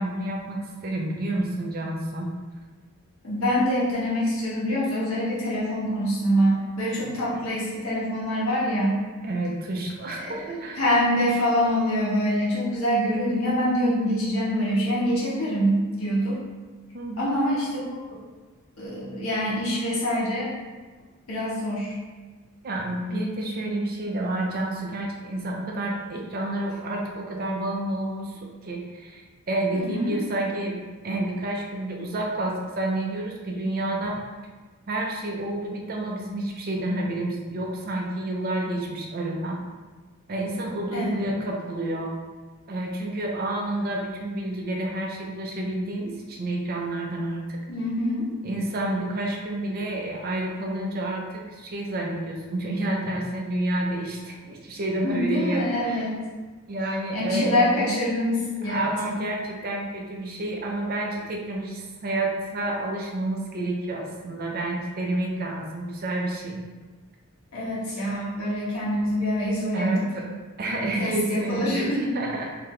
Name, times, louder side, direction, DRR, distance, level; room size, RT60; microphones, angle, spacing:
voice 1, 0.0-2.3 9.2-10.8 16.9-17.4 22.6-28.3 28.6-29.2 29.5-34.2 34.9-39.6 40.3-42.1 42.7-47.6 48.4-56.0 56.7-57.9 58.7-66.6 69.7-72.4, right 1 dB, 40° right, 0 dB, 0.5 m, -29 dB
voice 2, 3.2-9.0 10.1-10.3 10.8-16.4 17.2-18.0 18.8-20.5 21.3-21.9 29.7-30.2 40.9-41.2 47.7-48.3 55.0-56.1 57.1-59.2 67.5-70.0 71.0-72.1 72.4-72.5, equal, 65° left, -7 dB, 1.3 m, -25 dB
3.8 x 2.8 x 3.2 m, 1.4 s
head